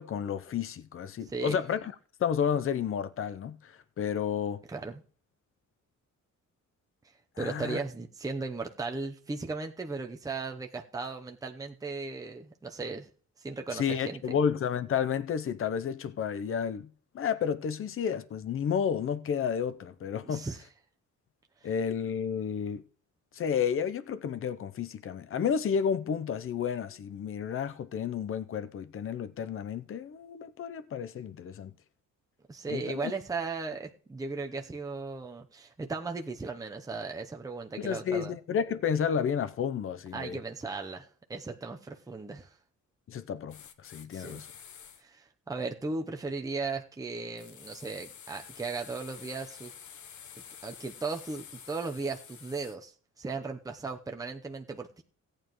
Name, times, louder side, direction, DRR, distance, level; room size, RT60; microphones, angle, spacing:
voice 1, 0.0-1.9 2.2-4.6 7.4-7.8 13.7-16.9 17.1-20.4 21.6-22.8 23.3-31.7 32.7-33.1 37.8-40.4 43.1-44.5, left 7 dB, 45° left, 0.7 m, -31 dB
voice 2, 1.3-1.6 4.7-5.0 7.4-13.1 13.4-14.2 20.2-20.7 32.5-38.4 40.1-42.5 44.1-44.4 45.0-49.7 50.6-52.9 53.2-55.0, right 4 dB, 10° right, 0.8 m, -36 dB
sound 1, 43.5-45.0 47.4-52.8, left 8 dB, 70° left, 1.0 m, -49 dB
17.0 x 9.0 x 3.1 m
wide cardioid pair, 165°, 30 cm